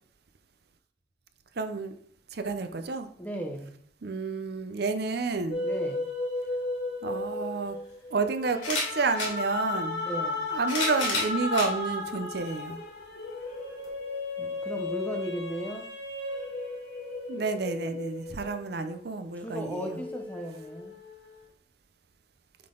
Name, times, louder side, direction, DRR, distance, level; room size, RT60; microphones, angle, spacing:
voice 1, 1.6-2.0 2.3-3.1 4.0-5.6 7.0-7.8 8.1-10.0 10.5-12.8 17.3-20.0, right 4 dB, 55° right, 9 dB, 0.5 m, -30 dB
voice 2, 3.2-3.8 5.6-6.1 10.0-10.5 14.4-15.9 19.4-21.0, equal, 10° left, 3 dB, 0.7 m, -36 dB
sound 1, 5.5-19.2 19.7-21.3, left 2 dB, 60° left, 1.5 m, -35 dB
sound 2, 7.1-7.2 8.5-9.3 10.3-11.7 12.5-12.6 13.8-13.9, left 3 dB, 75° left, 2.6 m, -30 dB
7.5 x 3.9 x 3.8 m, 0.62 s
head